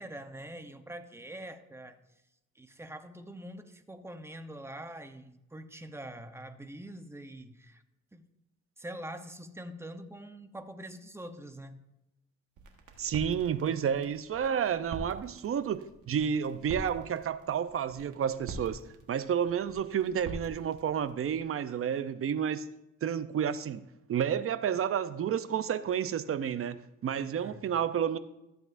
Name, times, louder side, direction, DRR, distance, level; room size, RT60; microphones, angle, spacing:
voice 1, 0.0-2.0 2.6-7.8 8.1-8.3 8.8-11.8 27.4-27.6, right 1 dB, 10° right, 0.8 m, -44 dB
sound 1, 12.6-21.4, right 3 dB, 85° right, 1.5 m, -46 dB
voice 2, 13.0-18.8 19.1-22.6 23.0-26.8 27.0-28.2, right 8 dB, 45° right, 0.6 m, -30 dB
13.5 x 7.9 x 2.6 m
cardioid pair, 90°, 30 cm